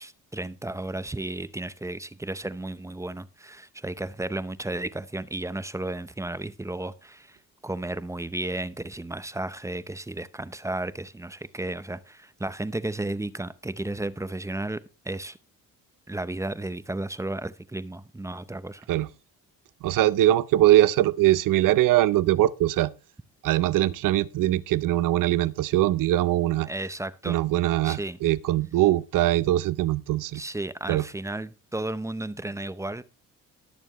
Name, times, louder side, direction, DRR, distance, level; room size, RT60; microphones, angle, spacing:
voice 1, 0.0-7.4 7.6-14.8 15.0-15.4 16.1-18.9 26.6-27.4 27.8-28.2 30.3-33.0, right 2 dB, 10° right, 0.7 m, -33 dB
voice 2, 19.8-22.9 23.4-26.7 27.3-30.4 30.9-31.0, right 14 dB, 75° right, 0.7 m, -22 dB
19.5 x 6.9 x 3.1 m
cardioid pair, 100°, 33 cm